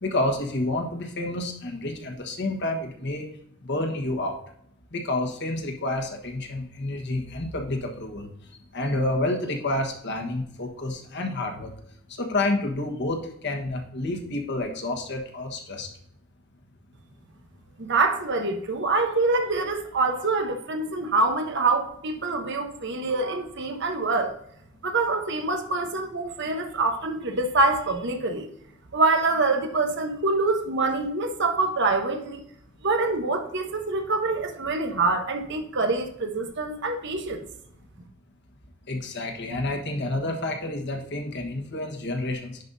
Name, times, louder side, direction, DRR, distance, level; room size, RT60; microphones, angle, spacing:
voice 1, 0.0-3.3 3.7-4.4 4.9-8.3 8.7-11.7 12.2-15.9 38.9-42.6, left 2 dB, 55° left, 1.4 m, -29 dB
voice 2, 17.8-24.4 24.8-28.5 28.9-32.4 32.8-37.4, right 3 dB, 60° right, 1.1 m, -25 dB
10.5 x 5.4 x 2.7 m
head